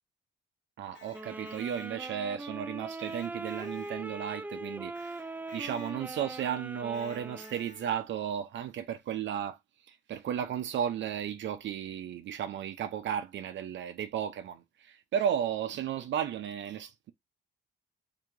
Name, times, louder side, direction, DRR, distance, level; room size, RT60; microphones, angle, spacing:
Electric guitar, 0.8-2.3 3.0-4.4 4.9-6.2 6.9-8.2, left 4 dB, 65° left, 1.8 m, -55 dB
voice 1, 0.8-5.3 5.5-9.6 9.9-17.1, right 9 dB, 70° right, 0.7 m, -34 dB
sound 1, 1.1-7.7, right 2 dB, 10° right, 0.3 m, -41 dB
3.7 x 2.9 x 3.7 m
cardioid pair, 90°, 20 cm